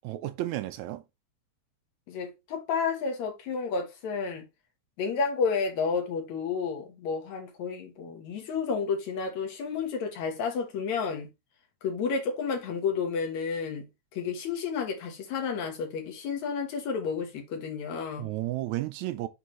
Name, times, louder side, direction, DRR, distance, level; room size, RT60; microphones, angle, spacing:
voice 1, 0.0-1.0 18.2-19.3, right 15 dB, 80° right, 1.9 m, -32 dB
voice 2, 2.1-4.4 5.0-11.3 11.8-13.9 14.1-18.3, left 5 dB, 70° left, 2.7 m, -31 dB
8.7 x 3.6 x 3.1 m
omnidirectional pair, 3.3 m